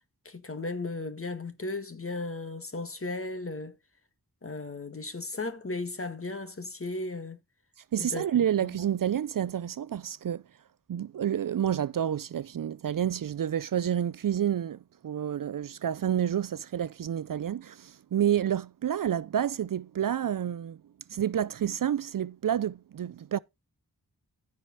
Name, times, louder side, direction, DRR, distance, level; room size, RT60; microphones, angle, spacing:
voice 1, 0.2-3.8 4.4-7.4 8.0-8.3 8.6-8.7, left 3 dB, 35° left, 1.7 m, -35 dB
voice 2, 7.9-10.4 10.9-20.8 21.1-23.4, right 10 dB, 60° right, 0.5 m, -29 dB
14.5 x 4.9 x 4.0 m
wide cardioid pair, 90°, 37 cm